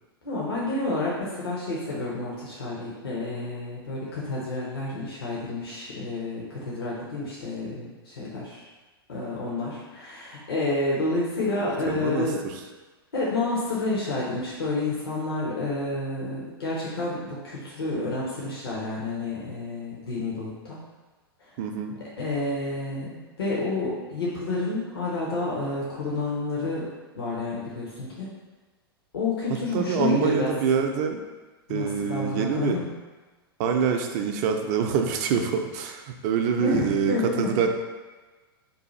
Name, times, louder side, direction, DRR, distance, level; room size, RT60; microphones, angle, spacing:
voice 1, 0.2-8.6 9.1-12.4 13.1-20.8 21.4-21.5 22.2-26.9 27.1-28.3 29.1-30.5 31.7-32.9 36.6-37.5, left 2 dB, 80° left, -6 dB, 0.8 m, -29 dB
voice 2, 11.9-12.6 21.6-22.0 29.5-31.2 31.7-32.8 33.6-37.7, right 6 dB, 45° right, 4 dB, 0.4 m, -26 dB
2.7 x 2.3 x 4.1 m, 1.3 s
hypercardioid pair, 100°, 13 cm